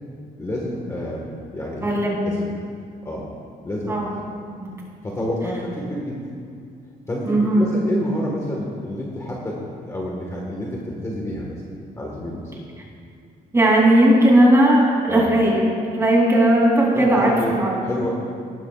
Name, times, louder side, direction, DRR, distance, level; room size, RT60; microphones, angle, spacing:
voice 1, 0.4-1.9 2.2-2.5 3.0-3.3 3.6-4.0 5.0-6.3 7.1-11.6 12.0-12.6 15.1-15.3 16.9-18.1, left 1 dB, 20° left, -3 dB, 1.5 m, -29 dB
voice 2, 1.8-2.2 3.9-4.1 4.6-4.7 7.2-7.7 13.5-15.6 15.9-17.7, right 1 dB, 15° right, -4 dB, 2.9 m, -17 dB
18.0 x 12.5 x 2.4 m, 2.3 s
cardioid pair, 140°, 16 cm